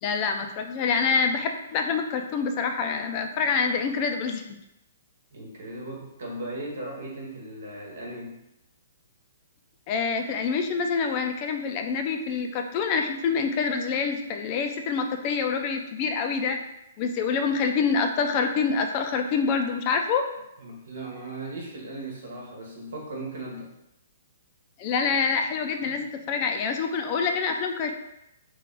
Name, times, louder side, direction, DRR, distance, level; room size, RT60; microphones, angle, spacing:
voice 1, 0.0-4.6 9.9-16.6 17.0-20.2 24.8-27.9, left 5 dB, 35° left, 5 dB, 0.4 m, -26 dB
voice 2, 5.3-8.4 20.6-23.7 25.8-26.0, right 2 dB, 70° right, -1 dB, 1.1 m, -37 dB
3.3 x 2.4 x 3.8 m, 0.86 s
hypercardioid pair, 135°, 0 cm